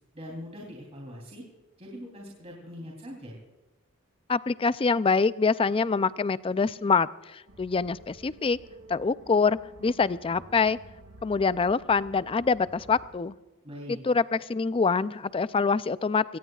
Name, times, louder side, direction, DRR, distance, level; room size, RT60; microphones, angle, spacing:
voice 1, 0.1-1.4 1.8-3.4 13.6-14.0, equal, 30° right, -2 dB, 3.3 m, -42 dB
voice 2, 4.3-8.6 8.9-10.8 11.2-13.3 13.9-16.4, left 4 dB, 25° left, 16 dB, 0.4 m, -25 dB
sound 1, 7.5-13.1, right 1 dB, 65° right, 2.6 m, -51 dB
24.0 x 18.0 x 2.4 m, 1.1 s
head